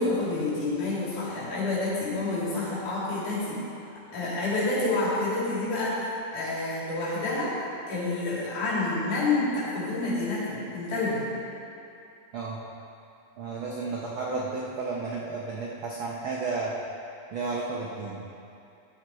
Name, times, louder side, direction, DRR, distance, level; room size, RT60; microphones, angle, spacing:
voice 1, 0.0-3.6 4.1-7.5 7.9-11.2, left 2 dB, 75° left, -8 dB, 4.5 m, -28 dB
voice 2, 13.4-16.7 17.3-18.2, right 3 dB, 70° right, -3 dB, 1.2 m, -32 dB
13.0 x 8.1 x 4.6 m, 2.7 s
omnidirectional pair, 3.6 m